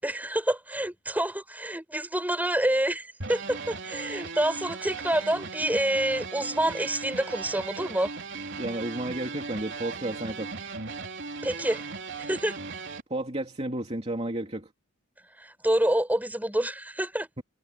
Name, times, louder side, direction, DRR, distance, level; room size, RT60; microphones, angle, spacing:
voice 1, 0.0-8.1 11.4-11.9 12.2-12.6 15.4-17.3, right 1 dB, 10° right, 5.8 m, -27 dB
sound 1, 3.2-13.0, right 4 dB, 55° right, 3.4 m, -37 dB
voice 2, 8.6-10.5 13.1-14.7, right 1 dB, 30° right, 2.8 m, -32 dB
head